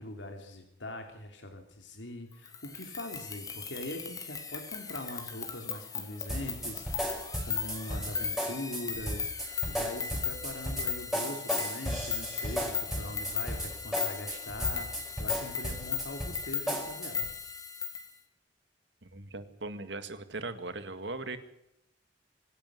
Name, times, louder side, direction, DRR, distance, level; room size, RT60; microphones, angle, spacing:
voice 1, 0.0-17.3, left 1 dB, 85° left, 4 dB, 3.1 m, -42 dB
sound 1, 2.5-18.1, left 6 dB, 20° left, 2.8 m, -37 dB
sound 2, 6.3-17.3, equal, ahead, 5.1 m, -35 dB
voice 2, 19.0-21.4, right 3 dB, 75° right, 10 dB, 2.1 m, -39 dB
25.5 x 11.5 x 9.7 m, 0.79 s
head